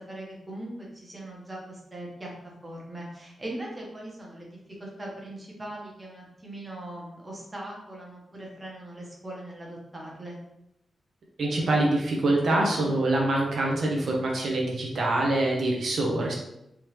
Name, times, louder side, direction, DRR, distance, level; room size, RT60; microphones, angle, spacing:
voice 1, 0.0-10.4, right 1 dB, 20° right, -3 dB, 1.0 m, -40 dB
voice 2, 11.4-16.3, right 2 dB, 60° right, -2 dB, 0.7 m, -25 dB
3.5 x 2.9 x 3.1 m, 0.82 s
wide cardioid pair, 155°, 0 cm